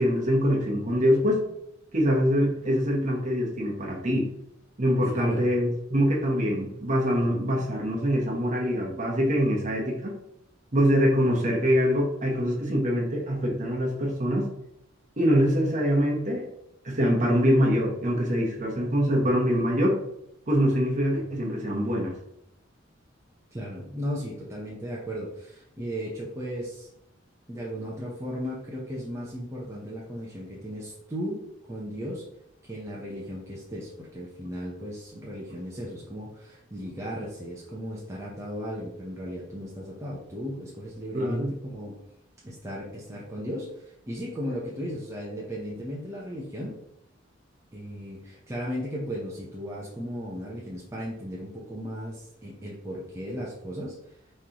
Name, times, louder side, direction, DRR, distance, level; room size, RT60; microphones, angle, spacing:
voice 1, 0.0-1.4 1.9-4.3 4.8-10.1 10.7-14.5 15.2-16.5 16.8-20.0 20.5-22.1 41.1-41.5, equal, 40° right, -1 dB, 0.9 m, -24 dB
voice 2, 5.1-5.5 23.5-26.9 27.5-31.4 31.7-32.2 32.6-41.9 42.4-46.7 47.7-54.0, equal, 15° right, -5 dB, 0.6 m, -36 dB
3.8 x 3.1 x 2.8 m, 0.76 s
head